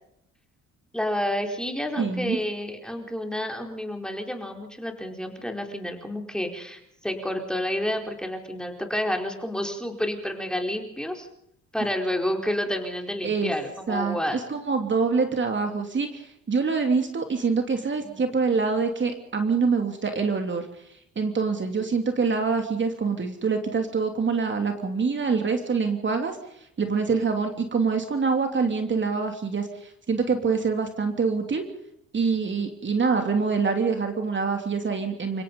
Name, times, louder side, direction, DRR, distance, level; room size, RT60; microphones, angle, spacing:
voice 1, 0.9-11.3 11.7-14.4 17.7-18.2, left 1 dB, ahead, 3 dB, 4.5 m, -30 dB
voice 2, 2.0-2.4 13.2-13.5 13.9-20.7 21.1-31.6 32.1-35.4, right 5 dB, 40° right, 5 dB, 3.0 m, -25 dB
29.5 x 17.0 x 5.5 m, 0.75 s
cardioid pair, 90°, 30 cm